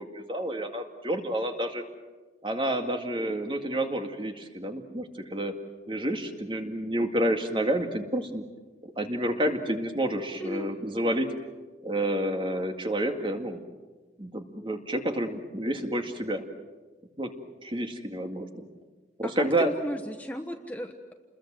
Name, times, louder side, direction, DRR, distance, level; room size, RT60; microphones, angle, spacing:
voice 1, 0.0-1.8 2.4-5.5 5.9-8.4 8.8-11.3 11.8-13.6 14.2-16.4 17.2-17.3 17.6-18.7 19.2-19.7, right 1 dB, 30° right, 5 dB, 2.1 m, -29 dB
voice 2, 19.2-21.1, equal, 10° left, 4 dB, 1.1 m, -35 dB
29.0 x 21.5 x 7.7 m, 1.3 s
head